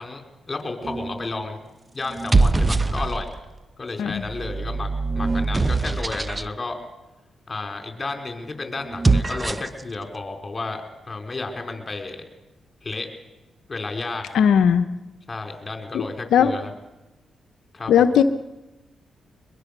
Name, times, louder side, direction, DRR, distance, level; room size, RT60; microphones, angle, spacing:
voice 1, 0.0-1.6 1.9-3.3 3.8-6.8 7.5-12.2 12.8-13.1 13.7-14.4 15.3-16.7 17.7-18.1, left 3 dB, 35° left, 5 dB, 4.6 m, -32 dB
sound 1, 0.8-1.3 2.1-3.5 4.2-6.5 8.8-9.8, right 3 dB, 25° right, 1.0 m, -23 dB
voice 2, 14.3-14.9 15.9-16.1 16.3-16.5 17.9-18.2, left 8 dB, 80° left, 10 dB, 0.9 m, -17 dB
22.5 x 22.0 x 6.8 m, 1.0 s
supercardioid pair, 60°, 0 cm